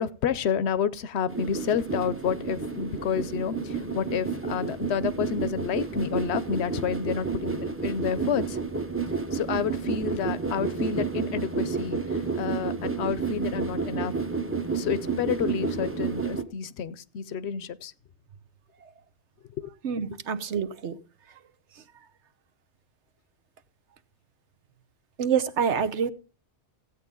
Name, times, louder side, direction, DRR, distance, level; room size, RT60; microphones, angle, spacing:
voice 1, 0.0-8.6 9.3-12.0 12.4-14.2 14.7-17.9 19.6-19.7, left 7 dB, 75° left, 0.9 m, -29 dB
sound 1, 1.3-16.4, right 5 dB, 15° right, 0.8 m, -31 dB
voice 2, 19.8-21.0 25.2-26.1, right 7 dB, 85° right, 1.3 m, -26 dB
15.5 x 8.5 x 3.8 m
omnidirectional pair, 1.1 m